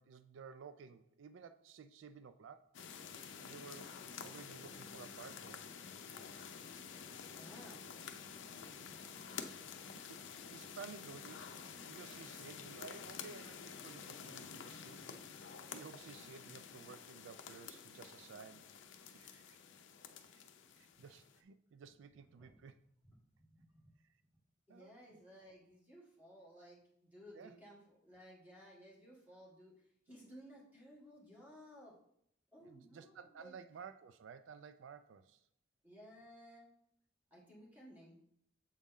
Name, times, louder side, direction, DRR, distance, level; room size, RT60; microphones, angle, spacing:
voice 1, 0.0-2.7 3.4-5.7 10.1-15.2 15.7-18.7 19.0-19.6 20.3-20.5 20.8-22.8 24.0-24.1 24.7-25.2 27.3-27.6 32.6-35.4, right 6 dB, 90° right, 11 dB, 0.4 m, -54 dB
sound 1, 2.7-21.4, left 6 dB, 75° left, 0.6 m, -50 dB
voice 2, 7.3-7.8 22.3-22.6 23.5-23.9 24.7-31.9 32.5-33.5 35.8-36.7 37.3-38.1, equal, 10° right, -5 dB, 2.0 m, -57 dB
7.3 x 4.1 x 3.7 m, 0.70 s
head